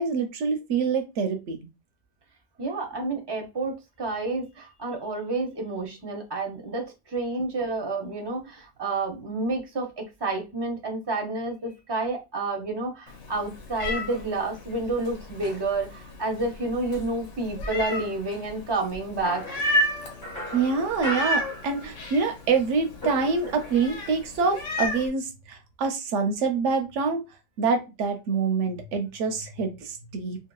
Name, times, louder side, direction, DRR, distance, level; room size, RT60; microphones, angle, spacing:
voice 1, 0.0-1.6 20.5-27.2 27.6-30.4, right 5 dB, 80° right, 0.9 m, -26 dB
voice 2, 2.6-19.7, right 2 dB, 30° right, 0.5 m, -30 dB
Meow, 13.1-25.1, left 1 dB, 90° left, 1.1 m, -33 dB
sound 1, 19.2-22.3 22.5-24.0, equal, 20° left, 0.7 m, -37 dB
2.8 x 2.8 x 2.2 m
omnidirectional pair, 1.2 m